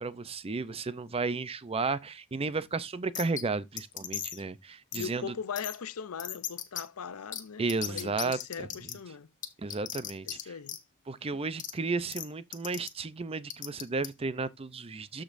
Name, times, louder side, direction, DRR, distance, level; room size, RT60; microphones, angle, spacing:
voice 1, 0.0-5.3 7.6-8.7 9.6-10.4 11.1-15.2, right 3 dB, 25° right, 0.5 m, -33 dB
sound 1, 3.1-3.4 3.8-4.4 4.9-5.1 5.6-5.8 6.2-6.8 7.3-7.4 7.7-8.9 9.4-10.4 10.7-10.8 11.6-11.7 12.1-12.3 12.5-12.9 13.5-14.1, left 10 dB, 35° left, 1.0 m, -36 dB
voice 2, 4.9-9.3 10.2-10.8, left 6 dB, 80° left, 0.6 m, -40 dB
13.5 x 5.1 x 2.6 m
head